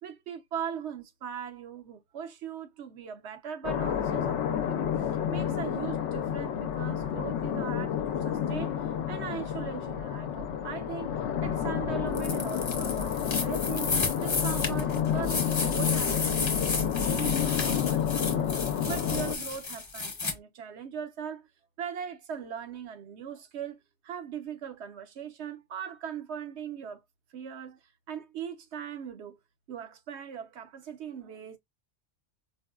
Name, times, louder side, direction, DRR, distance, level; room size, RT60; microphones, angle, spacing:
voice 1, 0.0-7.9 8.2-8.7 9.1-11.1 11.4-14.0 14.2-18.6 18.9-21.5 21.8-23.8 24.0-27.0 27.3-27.8 28.1-29.4 29.7-31.6, right 7 dB, 70° right, 1.0 m, -39 dB
sound 1, 3.6-19.3, left 8 dB, 75° left, 0.8 m, -30 dB
sound 2, 12.1-20.3, left 4 dB, 30° left, 0.7 m, -32 dB
4.6 x 2.1 x 2.3 m
omnidirectional pair, 1.2 m